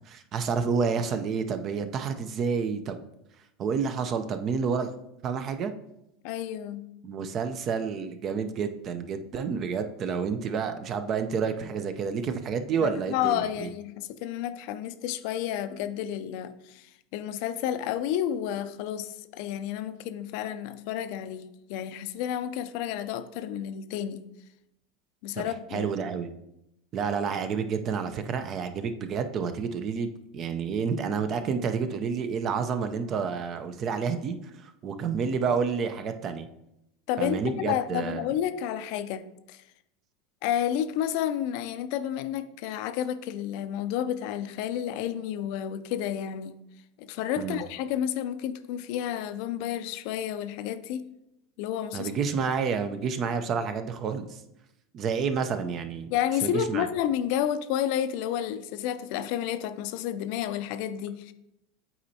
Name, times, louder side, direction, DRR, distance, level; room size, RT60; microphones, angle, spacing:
voice 1, 0.1-3.0 3.6-4.9 5.2-5.7 7.0-13.7 25.4-26.3 26.9-34.4 34.6-36.5 37.2-38.3 47.4-47.6 51.9-54.4 54.9-56.1 56.4-56.9, right 6 dB, 45° right, 0.6 m, -29 dB
voice 2, 6.2-6.9 12.8-24.2 25.2-25.9 37.1-39.6 40.4-46.6 47.0-51.1 51.6-52.1 56.1-61.3, left 10 dB, 65° left, 0.4 m, -31 dB
8.2 x 4.3 x 2.8 m
hypercardioid pair, 90°, 0 cm